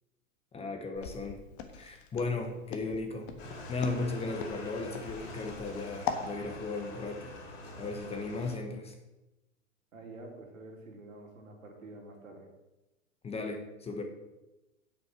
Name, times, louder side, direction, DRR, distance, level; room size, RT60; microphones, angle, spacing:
voice 1, 0.5-1.4 1.7-7.3 7.8-8.9 13.2-14.0, left 3 dB, 15° left, 4 dB, 1.1 m, -36 dB
Walk footsteps, 1.0-6.3, left 7 dB, 40° left, 1.4 m, -40 dB
sound 1, 3.4-8.6, left 1 dB, 55° left, 3.1 m, -45 dB
voice 2, 9.9-12.5, right 2 dB, 70° right, 1 dB, 3.0 m, -48 dB
8.1 x 7.9 x 6.1 m, 1.0 s
figure-of-eight pair, 110°, 41 cm